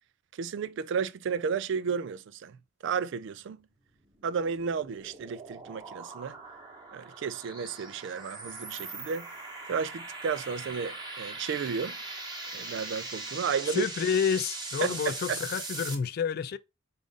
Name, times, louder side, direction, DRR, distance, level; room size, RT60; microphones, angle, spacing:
voice 1, 0.4-2.6 2.8-3.6 4.2-6.4 6.9-9.3 9.7-12.0 12.5-13.9 14.8-15.0 15.3-15.4, right 6 dB, 65° right, 0.3 m, -32 dB
sound 1, 3.9-15.9, right 3 dB, 20° right, 1.1 m, -41 dB
voice 2, 13.7-16.6, left 7 dB, 50° left, 0.3 m, -29 dB
4.9 x 2.5 x 3.6 m
head